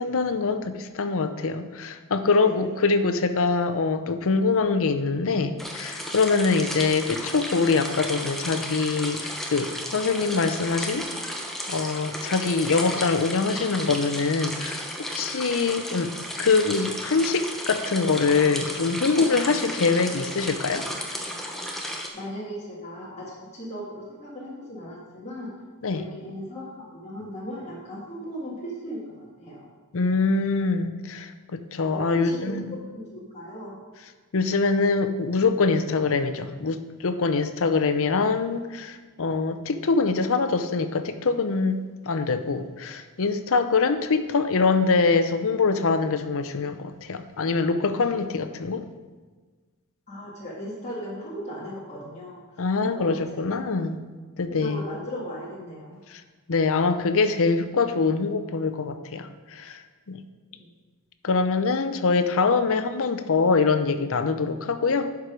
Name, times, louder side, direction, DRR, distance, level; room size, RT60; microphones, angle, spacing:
voice 1, 0.0-11.1 11.7-14.8 15.1-16.1 16.4-20.9 25.8-26.0 29.9-32.8 34.3-48.9 52.6-54.0 54.4-54.8 56.1-56.2 56.5-59.8 60.1-60.2 61.2-65.1, left 4 dB, 65° left, 9 dB, 0.6 m, -24 dB
voice 2, 2.4-2.7 6.5-6.6 19.6-19.7 22.1-25.5 25.9-29.7 31.9-33.8 50.1-52.4 52.8-53.2 54.6-56.0 60.5-60.7, equal, 30° left, -7 dB, 1.8 m, -37 dB
sound 1, 5.6-22.1, equal, ahead, 0.9 m, -34 dB
11.5 x 4.8 x 5.1 m, 1.4 s
head